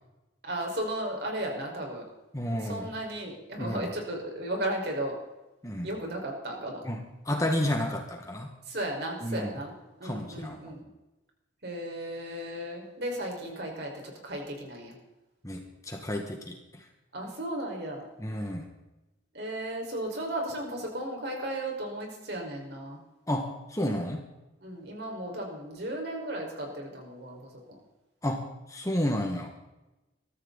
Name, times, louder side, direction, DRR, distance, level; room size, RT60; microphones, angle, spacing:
voice 1, 0.4-2.0 2.6-5.1 5.8-6.8 8.7-9.7 10.0-10.8 11.6-14.9 17.1-18.0 19.3-23.0 24.6-27.4 27.7-27.8, right 1 dB, 55° right, 0 dB, 5.3 m, -35 dB
voice 2, 2.3-2.9 3.6-3.8 5.6-5.9 6.8-8.5 9.2-9.5 10.0-10.7 15.4-16.6 18.2-18.7 23.3-24.2 28.2-28.4 28.7-29.6, left 1 dB, 15° left, 2 dB, 1.9 m, -31 dB
23.0 x 13.5 x 4.2 m, 1.0 s
head